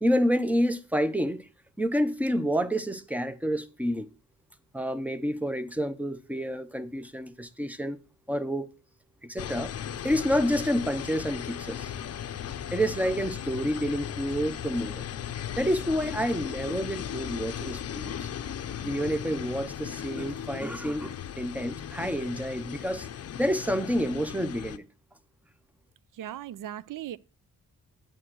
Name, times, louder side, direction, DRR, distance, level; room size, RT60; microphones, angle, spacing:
voice 1, 0.0-1.4 1.8-4.1 4.7-8.0 8.3-8.7 9.2-9.7 10.0-11.9 12.7-15.1 15.6-18.3 18.8-23.1 23.4-24.9, equal, 5° right, 0.6 m, -29 dB
sound 1, 9.4-24.8, left 9 dB, 50° left, 0.6 m, -37 dB
voice 2, 26.1-27.2, right 11 dB, 70° right, 0.5 m, -38 dB
9.1 x 7.6 x 6.2 m
wide cardioid pair, 145°, 33 cm